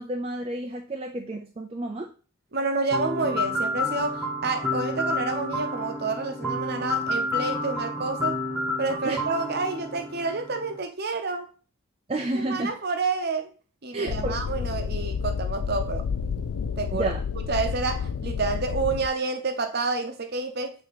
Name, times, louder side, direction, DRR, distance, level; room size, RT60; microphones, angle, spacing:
voice 1, 0.0-2.1 9.0-9.2 12.1-12.7 13.9-14.4 16.9-17.2, right 2 dB, 25° right, 0.5 m, -30 dB
voice 2, 2.5-8.4 8.8-11.5 12.3-13.5 13.8-16.0 16.8-17.1 17.5-20.7, right 3 dB, 45° right, 0.8 m, -29 dB
sound 1, 2.9-10.8, left 1 dB, ahead, 1.3 m, -30 dB
sound 2, 14.1-19.1, left 6 dB, 85° left, 0.4 m, -30 dB
8.4 x 2.9 x 4.2 m
head